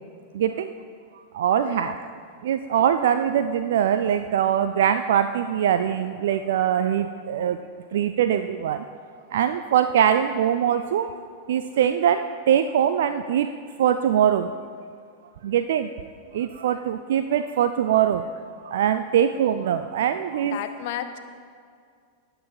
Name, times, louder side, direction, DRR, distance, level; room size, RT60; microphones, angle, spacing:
voice 1, 0.4-0.7 1.4-1.9 2.5-7.6 7.9-8.8 9.3-11.1 11.5-12.2 12.5-13.5 13.8-14.5 15.4-15.9 16.3-18.2 18.7-20.6, right 9 dB, 60° right, 9 dB, 0.4 m, -22 dB
voice 2, 1.5-1.9 20.5-21.2, left 10 dB, 50° left, 9 dB, 0.8 m, -33 dB
18.0 x 6.9 x 4.4 m, 2.2 s
figure-of-eight pair, 90°, 0 cm